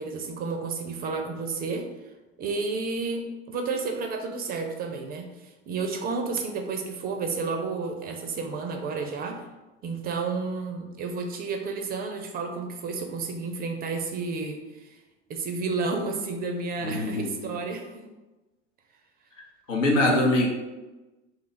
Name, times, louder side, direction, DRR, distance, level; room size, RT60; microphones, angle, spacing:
voice 1, 0.0-1.8 2.4-3.2 3.5-9.4 9.8-15.0 15.3-18.1, right 4 dB, 25° right, 4 dB, 0.4 m, -31 dB
voice 2, 16.8-17.5 19.7-20.5, left 1 dB, 85° left, -1 dB, 0.9 m, -23 dB
2.7 x 2.3 x 3.9 m, 1.1 s
hypercardioid pair, 85°, 37 cm